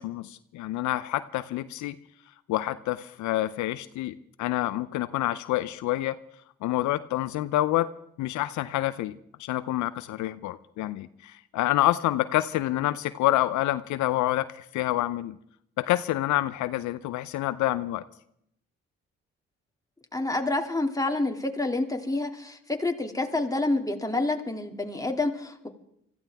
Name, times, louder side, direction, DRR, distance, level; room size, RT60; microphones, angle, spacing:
voice 1, 0.0-1.9 2.5-6.1 6.6-7.9 8.2-9.1 9.4-15.4 15.8-18.0, left 15 dB, 75° left, 14 dB, 0.7 m, -27 dB
voice 2, 20.1-25.7, left 2 dB, 10° left, 3 dB, 2.6 m, -28 dB
25.0 x 15.0 x 3.6 m, 0.73 s
hypercardioid pair, 50°, 30 cm